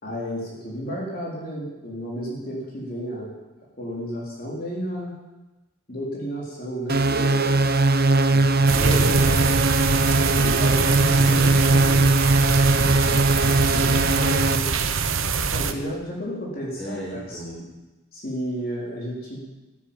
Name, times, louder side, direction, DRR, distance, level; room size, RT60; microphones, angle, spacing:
voice 1, 0.0-3.3 3.8-5.1 5.9-7.0 8.3-9.3 10.3-12.1 12.7-14.7 15.5-17.4 18.1-19.4, equal, 40° left, -4 dB, 4.2 m, -32 dB
sound 1, 6.9-14.6, right 2 dB, 45° right, 0.7 m, -20 dB
voice 2, 7.1-7.6 8.7-9.6 16.8-17.7, right 1 dB, ahead, -6 dB, 4.4 m, -35 dB
sound 2, 8.7-15.7, right 4 dB, 65° right, 1.1 m, -23 dB
14.5 x 9.8 x 8.9 m, 1.1 s
head